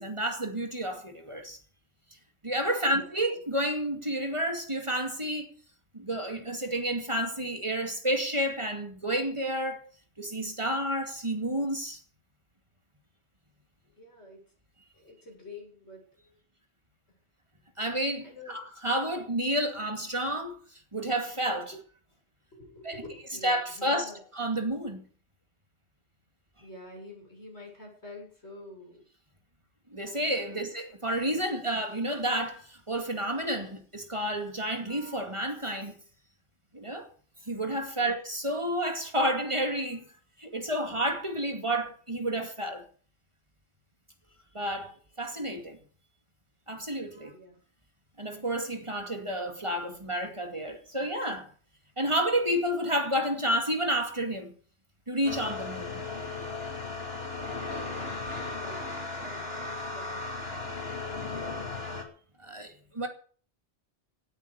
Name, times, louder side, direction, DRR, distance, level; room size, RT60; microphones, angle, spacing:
voice 1, 0.0-1.6 2.4-5.5 5.9-9.8 10.2-12.0 17.8-20.6 20.9-21.7 22.8-23.0 23.4-25.0 29.9-36.0 36.7-37.1 37.5-40.0 40.4-42.8 44.5-44.9 45.2-45.8 46.7-47.3 48.2-51.5 52.0-54.5 55.1-56.0 62.4-63.1, right 1 dB, 30° right, 2.4 m, -30 dB
voice 2, 14.0-14.4 14.9-16.0 18.2-18.6 21.7-21.8 22.5-24.2 26.6-29.0 30.5-30.6 31.6-31.7 38.0-38.2 47.3-47.6 57.9-61.9, left 1 dB, 90° left, 7.9 m, -48 dB
sound 1, 55.2-62.0, left 3 dB, 65° left, 3.3 m, -36 dB
17.0 x 9.2 x 7.0 m
omnidirectional pair, 1.1 m